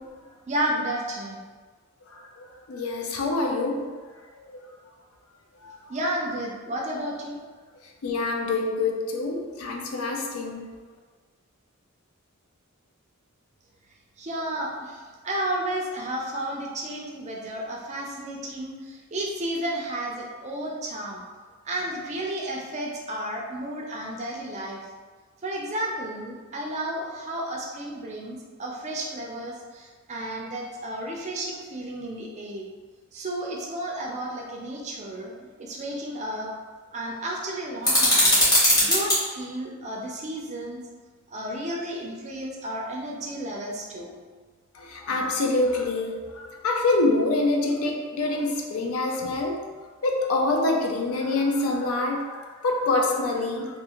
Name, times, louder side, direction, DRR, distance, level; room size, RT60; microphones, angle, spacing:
voice 1, 0.5-1.4 5.9-7.4 14.2-15.0 15.2-21.2 21.6-24.8 25.4-32.6 33.1-36.5 36.9-38.4 38.8-40.8 41.3-44.1, right 1 dB, 30° right, -1 dB, 0.4 m, -32 dB
voice 2, 2.4-3.8 4.5-4.6 5.6-5.8 8.0-10.7 44.8-49.6 50.0-53.7, left 2 dB, 70° left, 1 dB, 0.4 m, -26 dB
sound 1, 37.8-39.2, left 1 dB, 15° left, 0.9 m, -19 dB
2.4 x 2.4 x 2.9 m, 1.4 s
head